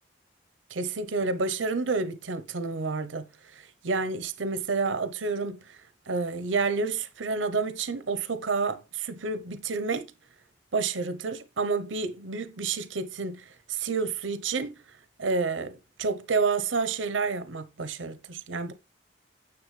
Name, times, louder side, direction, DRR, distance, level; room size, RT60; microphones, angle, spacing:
voice 1, 0.7-3.3 3.5-5.6 6.1-10.1 10.7-13.4 13.7-14.8 15.2-18.7, right 4 dB, 85° right, 0.8 m, -29 dB
9.6 x 7.2 x 3.2 m
head